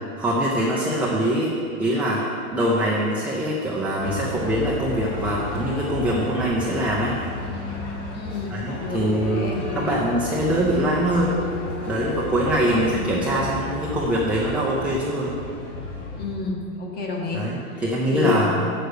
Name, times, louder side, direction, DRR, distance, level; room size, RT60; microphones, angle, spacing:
voice 1, 0.2-1.5 1.8-2.2 2.5-7.2 8.5-11.4 11.8-15.3 17.3-18.7, right 1 dB, 5° right, -6 dB, 0.5 m, -23 dB
sound 1, 3.3-14.5, left 6 dB, 50° left, 1.2 m, -38 dB
sound 2, 4.0-16.3, left 2 dB, 35° left, 2.3 m, -34 dB
voice 2, 8.1-9.6 12.7-13.5 16.2-17.5 17.7-18.5, left 3 dB, 20° left, 0 dB, 1.4 m, -30 dB
7.7 x 6.7 x 6.5 m, 2.6 s
hypercardioid pair, 135°, 44 cm